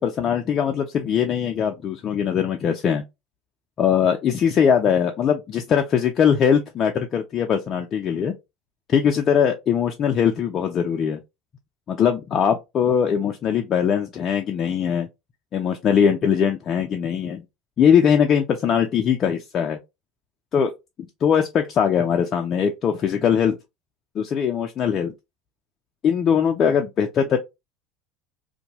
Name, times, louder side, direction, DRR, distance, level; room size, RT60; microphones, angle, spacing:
voice 1, 0.0-3.0 3.8-8.3 8.9-11.2 11.9-15.1 15.5-17.4 17.8-19.8 20.5-20.7 21.2-23.6 24.2-25.1 26.0-27.4, left 7 dB, 40° left, 0.4 m, -21 dB
2.6 x 2.2 x 2.8 m
hypercardioid pair, 75°, 0 cm